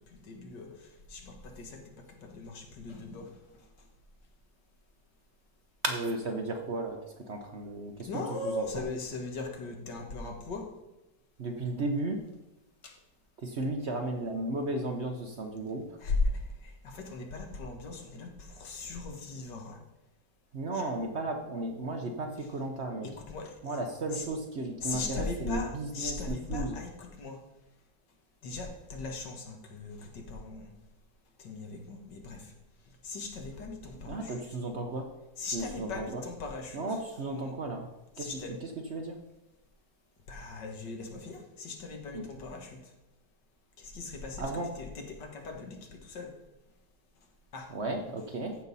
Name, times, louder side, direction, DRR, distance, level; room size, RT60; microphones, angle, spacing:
voice 1, 0.2-0.7 1.1-1.8 2.2-3.4 8.1-10.7 12.8-12.9 16.0-16.2 16.6-19.8 23.0-23.8 24.8-27.4 28.4-30.7 31.4-32.5 33.0-34.3 35.4-36.8 37.3-37.5 38.2-38.5 40.3-42.8 43.8-44.5 44.8-46.3 47.5-47.7, left 3 dB, 80° left, 3 dB, 2.0 m, -39 dB
voice 2, 5.8-8.9 11.4-12.2 13.4-15.9 20.5-23.1 23.6-26.8 34.0-35.1 35.5-36.2 36.7-37.9 38.2-39.2 42.1-42.2 44.4-44.8 47.7-48.6, right 2 dB, 50° right, 4 dB, 0.9 m, -34 dB
14.5 x 5.4 x 4.1 m, 0.98 s
omnidirectional pair, 1.9 m